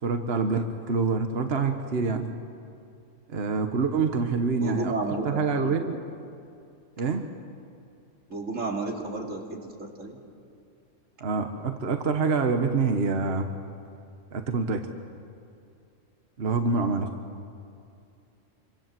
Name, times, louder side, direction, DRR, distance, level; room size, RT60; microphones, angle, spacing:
voice 1, 0.0-2.3 3.3-6.0 7.0-7.2 11.2-13.5 14.3-14.9 16.4-17.1, right 4 dB, 55° right, 6 dB, 1.5 m, -26 dB
voice 2, 4.6-5.9 8.3-10.2 17.0-17.1, right 2 dB, 90° right, 0 dB, 3.5 m, -32 dB
27.0 x 25.5 x 7.6 m, 2.5 s
omnidirectional pair, 1.3 m